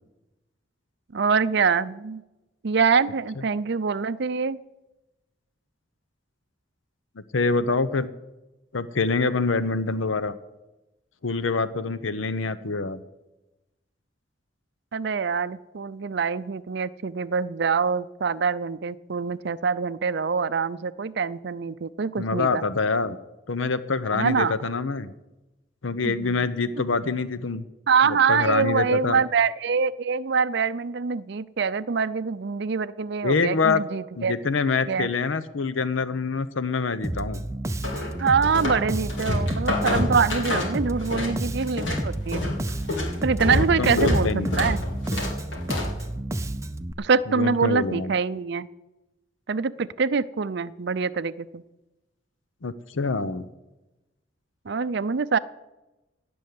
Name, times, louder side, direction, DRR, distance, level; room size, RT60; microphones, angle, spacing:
voice 1, 1.1-2.2 2.6-4.6 14.9-22.6 24.1-24.5 26.0-26.5 26.7-26.8 27.9-34.3 34.9-35.1 38.2-42.4 43.2-44.8 47.0-48.7 49.5-51.6 54.7-55.4, right 5 dB, 60° right, 12 dB, 0.5 m, -24 dB
voice 2, 7.3-8.1 8.7-10.3 11.2-13.0 22.2-23.2 23.5-25.1 25.8-27.6 28.3-29.2 33.2-33.8 34.2-37.4 43.4-44.6 47.3-48.1 52.6-53.4, left 4 dB, 85° left, 14 dB, 0.7 m, -25 dB
Bass guitar, 37.0-46.9, right 1 dB, 15° right, 0.6 m, -31 dB
sound 1, 37.8-38.8 39.1-41.3 41.6-46.0, left 1 dB, 70° left, 4.1 m, -27 dB
17.0 x 6.3 x 9.5 m, 1.0 s
head